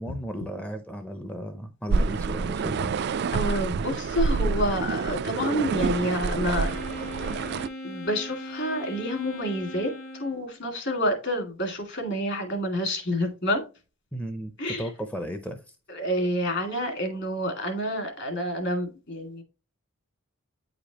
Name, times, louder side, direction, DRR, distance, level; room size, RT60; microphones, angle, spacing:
voice 1, 0.0-2.9 14.1-15.8, equal, 5° left, 0.6 m, -35 dB
sound 1, 1.9-7.7, right 4 dB, 50° right, 0.3 m, -27 dB
voice 2, 3.3-6.7 7.8-9.9 10.2-13.6 14.6-14.9 15.9-19.4, equal, 55° left, 2.3 m, -28 dB
Wind instrument woodwind instrument, 6.5-10.6, left 1 dB, 80° left, 1.9 m, -39 dB
9.4 x 5.0 x 2.9 m
head